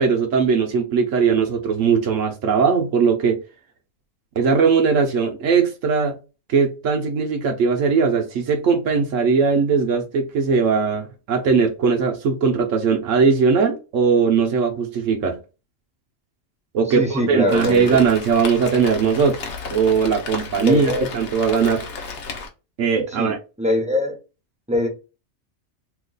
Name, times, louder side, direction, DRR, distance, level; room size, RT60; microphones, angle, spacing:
voice 1, 0.0-3.4 4.4-6.2 6.5-15.4 16.7-19.4 19.7-21.8 22.8-23.4, right 5 dB, 70° right, 1.0 m, -19 dB
voice 2, 16.9-18.0 20.6-21.1 23.2-24.2 24.7-24.9, left 1 dB, 10° right, 0.5 m, -22 dB
Rain, 17.5-22.5, left 4 dB, 55° left, 0.8 m, -33 dB
2.9 x 2.4 x 3.7 m
omnidirectional pair, 1.4 m